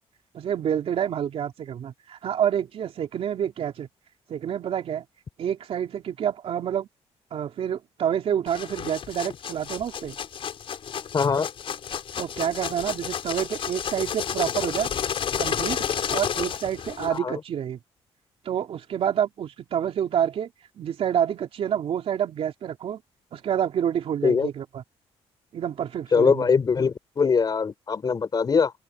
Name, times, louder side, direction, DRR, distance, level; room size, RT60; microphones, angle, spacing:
voice 1, 0.3-3.9 4.3-5.1 5.4-6.9 7.3-10.2 12.2-14.9 15.4-17.8 18.4-20.5 20.8-23.0 23.3-24.8 25.5-26.5, right 9 dB, 60° right, 3.3 m, -28 dB
sound 1, 8.5-17.2, left 8 dB, 55° left, 5.3 m, -31 dB
voice 2, 11.1-11.5 17.1-17.4 24.2-24.5 26.1-28.7, left 5 dB, 40° left, 4.9 m, -22 dB
open air
cardioid pair, 100°, 11 cm